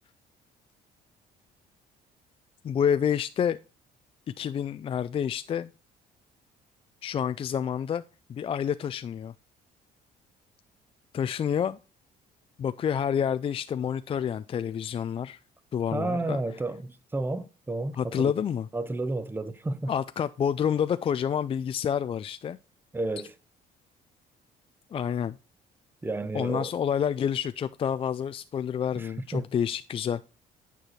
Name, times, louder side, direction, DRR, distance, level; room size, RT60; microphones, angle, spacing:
voice 1, 2.6-3.6 4.4-5.7 7.0-8.0 8.3-9.3 11.1-11.8 12.6-15.4 15.7-16.4 18.0-18.7 19.9-22.6 24.9-25.3 26.3-30.2, left 8 dB, 35° left, 0.3 m, -28 dB
voice 2, 15.9-18.3 18.7-19.9 22.9-23.3 26.0-26.7 28.9-29.5, right 2 dB, 10° right, 0.7 m, -31 dB
9.2 x 4.8 x 4.2 m
cardioid pair, 110°, 17 cm